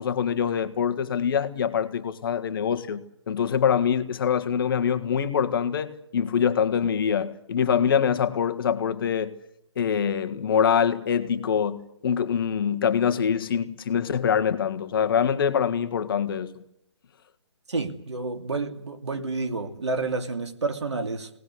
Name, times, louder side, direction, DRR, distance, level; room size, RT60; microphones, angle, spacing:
voice 1, 0.0-9.3 9.8-16.5, left 7 dB, 50° left, 1.9 m, -24 dB
voice 2, 17.7-21.3, right 3 dB, 75° right, 2.7 m, -29 dB
20.5 x 19.0 x 9.9 m
figure-of-eight pair, 140°, 15 cm